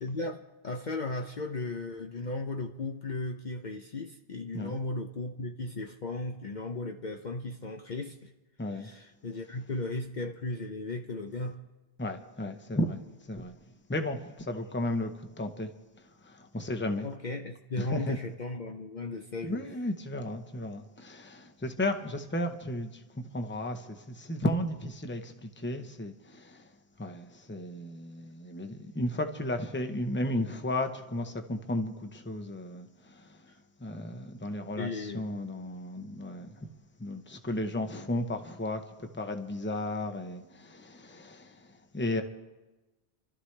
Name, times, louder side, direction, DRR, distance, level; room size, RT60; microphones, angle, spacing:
voice 1, 0.0-8.3 8.7-11.6 17.0-19.7 34.8-35.3, left 2 dB, 50° left, 4 dB, 0.8 m, -36 dB
voice 2, 8.6-8.9 12.0-13.0 13.3-13.6 13.9-15.7 16.2-17.1 17.8-18.2 19.4-23.0 23.3-26.7 27.0-33.4 33.8-36.7 37.0-38.8 39.1-41.6 41.9-42.2, left 1 dB, 10° left, 6 dB, 0.8 m, -34 dB
27.5 x 13.0 x 3.3 m, 1.1 s
omnidirectional pair, 1.1 m